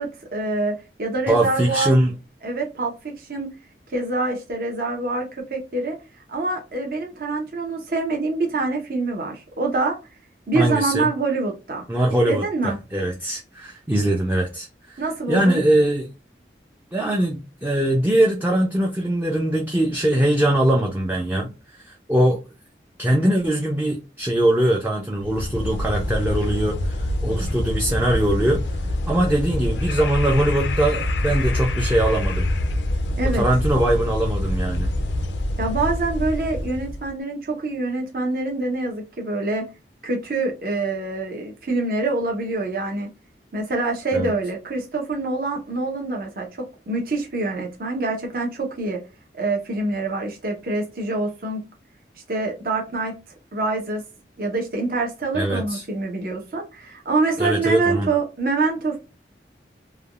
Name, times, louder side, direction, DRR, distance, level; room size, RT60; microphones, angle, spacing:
voice 1, 0.0-1.9 2.4-3.5 3.9-6.0 6.3-10.0 10.5-11.8 12.2-12.8 15.0-15.6 33.2-33.4 35.6-39.7 40.0-43.1 43.5-46.5 46.9-49.0 49.3-51.6 52.3-53.2 53.5-54.0 54.4-59.0, right 3 dB, 55° right, 0.7 m, -25 dB
voice 2, 1.3-2.1 10.5-11.1 11.9-16.1 16.9-21.5 21.9-22.4 23.0-28.6 29.1-32.5 33.3-34.9 44.1-44.3 55.3-55.8 57.4-58.1, right 1 dB, 10° right, 0.4 m, -21 dB
sound 1, 25.2-37.1, left 1 dB, 90° left, 0.4 m, -25 dB
3.3 x 2.2 x 2.3 m
head